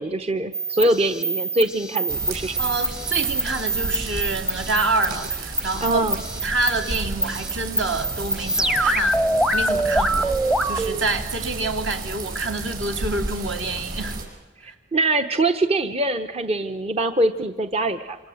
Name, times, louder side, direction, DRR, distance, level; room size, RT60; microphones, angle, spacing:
voice 1, 0.0-2.6 5.8-6.2 14.6-18.2, right 2 dB, 30° right, 7 dB, 0.9 m, -23 dB
sound 1, 0.5-11.0, right 1 dB, 5° right, 0.8 m, -25 dB
sound 2, 2.1-14.2, right 2 dB, 50° right, 6.6 m, -33 dB
voice 2, 2.6-6.1 6.4-9.2 9.5-10.4 10.6-14.2 14.6-14.7, right 3 dB, 65° right, 5 dB, 3.0 m, -27 dB
27.0 x 26.5 x 7.9 m, 1.1 s
head